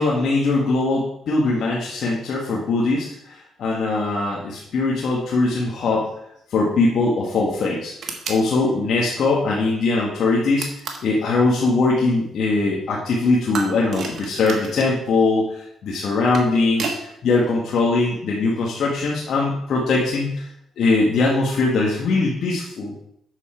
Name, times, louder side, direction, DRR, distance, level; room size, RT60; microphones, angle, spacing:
voice 1, 0.0-6.1 6.5-7.9 8.3-20.5 20.8-22.9, left 3 dB, 65° left, -3 dB, 1.5 m, -21 dB
sound 1, 8.0-8.4 10.6-11.1 13.5-14.9 16.1-17.0, right 4 dB, 60° right, 1.4 m, -31 dB
8.2 x 6.4 x 4.4 m, 0.75 s
cardioid pair, 90°, 0 cm